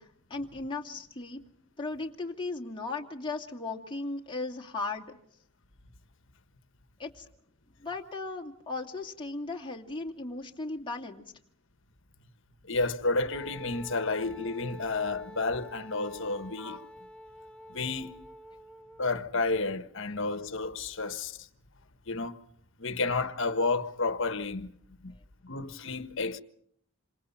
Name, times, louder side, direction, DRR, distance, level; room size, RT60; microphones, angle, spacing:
voice 1, 0.0-1.4 1.8-5.2 7.0-7.3 7.8-11.3, left 3 dB, 20° left, 2.5 m, -37 dB
voice 2, 12.7-16.9 17.7-18.2 19.0-21.5 22.1-22.3 22.8-24.7 25.0-25.1 25.4-26.4, left 3 dB, 60° left, 1.5 m, -31 dB
Wind instrument woodwind instrument, 13.3-19.3, left 1 dB, 5° left, 1.0 m, -48 dB
27.5 x 27.0 x 5.8 m
head